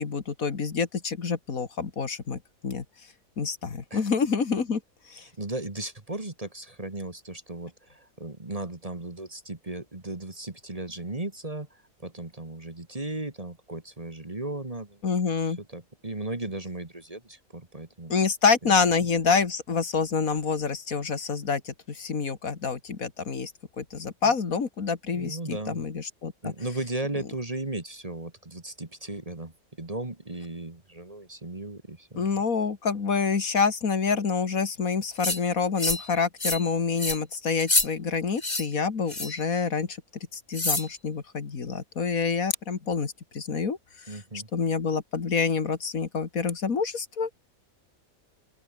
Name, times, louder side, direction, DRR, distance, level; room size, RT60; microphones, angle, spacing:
voice 1, 0.0-2.8 3.4-4.8 5.1-5.2 15.0-15.6 18.1-23.5 23.8-26.5 32.2-40.0 40.3-43.8 44.1-44.2 44.5-47.3, left 5 dB, 75° left, 2.4 m, -27 dB
voice 2, 5.2-15.1 15.5-18.1 18.6-18.7 24.2-24.4 25.1-25.8 26.4-32.2 44.1-44.5, right 2 dB, 25° right, 2.1 m, -36 dB
sound 1, 35.2-35.4 35.8-36.1 36.4-36.7 37.0-37.2 37.6-37.9 38.4-38.6 39.1-39.4 40.5-40.9, left 2 dB, 30° left, 2.9 m, -26 dB
open air
omnidirectional pair, 1.5 m